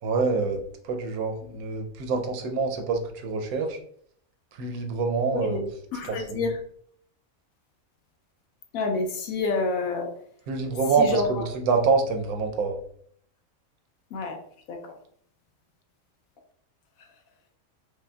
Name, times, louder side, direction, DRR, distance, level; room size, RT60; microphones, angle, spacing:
voice 1, 0.0-3.8 4.5-5.7 6.0-6.5 10.5-12.8, right 4 dB, 85° right, 4 dB, 1.1 m, -26 dB
voice 2, 5.9-6.5 8.7-10.1 11.0-11.2 14.1-14.4 14.7-14.9, left 3 dB, 75° left, 4 dB, 1.0 m, -28 dB
4.9 x 2.1 x 2.2 m, 0.62 s
omnidirectional pair, 1.5 m